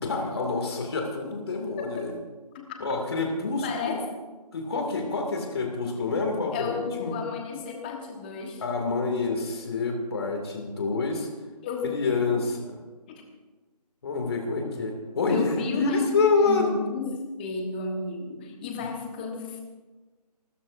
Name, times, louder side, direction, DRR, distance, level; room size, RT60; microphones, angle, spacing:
voice 1, 0.0-2.1 2.8-4.0 4.5-7.2 8.6-11.3 11.8-12.8 14.0-16.7 18.8-18.9, left 4 dB, 40° left, 2 dB, 2.4 m, -27 dB
voice 2, 1.8-2.1 2.5-2.8 3.5-4.0 6.5-8.6 11.6-12.0 13.1-13.2 14.6-14.7 15.3-16.2 16.4-19.6, left 5 dB, 15° left, 3 dB, 1.2 m, -33 dB
28.5 x 12.5 x 2.6 m, 1.3 s
figure-of-eight pair, 160°, 21 cm